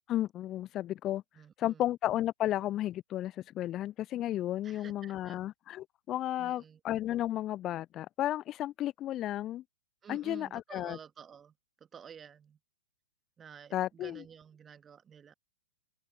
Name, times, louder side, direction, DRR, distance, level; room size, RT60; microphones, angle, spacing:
voice 1, 0.1-1.2 1.6-9.6 10.1-11.0 13.7-14.2, left 13 dB, 25° left, 0.3 m, -33 dB
voice 2, 1.3-1.9 4.6-5.4 6.4-6.8 10.0-11.5 11.8-12.6 13.4-15.3, right 7 dB, 20° right, 1.7 m, -51 dB
figure-of-eight pair, 105°, 0 cm